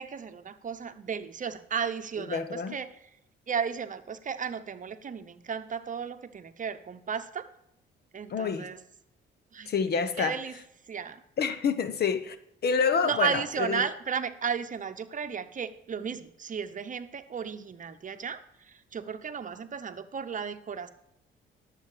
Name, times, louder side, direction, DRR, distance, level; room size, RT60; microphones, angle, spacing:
voice 1, 0.0-2.9 3.5-7.5 8.1-8.8 9.5-9.7 10.2-10.5 10.9-11.2 13.0-18.4 18.7-20.9, right 7 dB, 40° right, 0.9 m, -34 dB
voice 2, 2.2-2.8 8.3-8.7 9.7-10.4 11.4-12.4 12.6-13.8, left 6 dB, 55° left, 1.0 m, -28 dB
12.0 x 7.5 x 5.0 m
cardioid pair, 90°, 20 cm